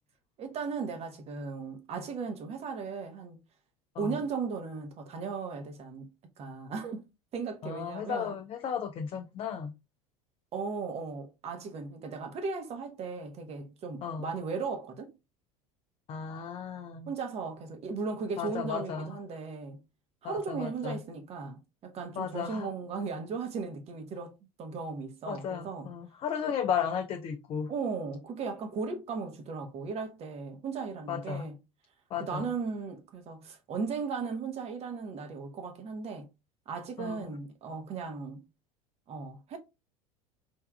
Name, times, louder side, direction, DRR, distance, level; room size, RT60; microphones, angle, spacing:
voice 1, 0.4-3.4 4.0-7.0 7.3-8.3 10.5-15.1 17.1-19.8 20.2-24.3 24.6-25.9 27.7-31.6 32.2-36.3 36.7-38.4 39.1-39.6, right 5 dB, 35° right, 1.0 m, -36 dB
voice 2, 7.6-9.7 14.0-14.3 16.1-17.1 18.4-19.2 20.2-21.0 22.2-22.7 25.3-27.7 31.1-31.5 32.1-32.4 37.0-37.2, left 7 dB, 30° left, 0.5 m, -34 dB
4.6 x 3.4 x 2.2 m
figure-of-eight pair, 70°, 18 cm